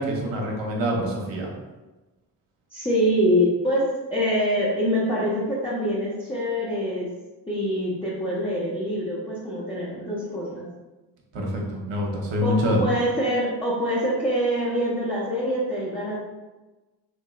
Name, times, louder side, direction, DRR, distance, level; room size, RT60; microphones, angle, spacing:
voice 1, 0.0-1.5 11.3-12.9, equal, 60° right, -1 dB, 1.0 m, -25 dB
voice 2, 2.7-7.1 7.5-10.6 12.4-12.5 12.8-16.2, equal, 10° left, -9 dB, 0.9 m, -25 dB
3.2 x 2.9 x 2.3 m, 1.1 s
hypercardioid pair, 45°, 50 cm